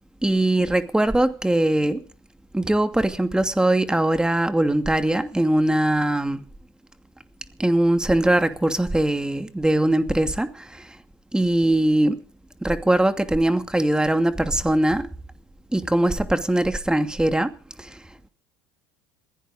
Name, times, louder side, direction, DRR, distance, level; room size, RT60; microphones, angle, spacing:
voice 1, 0.2-2.0 2.5-6.4 7.6-10.8 11.3-12.2 12.6-15.1 15.7-17.5 17.8-17.9, right 1 dB, 5° right, 2.6 m, -21 dB
21.0 x 16.5 x 4.0 m
hypercardioid pair, 80°, 11 cm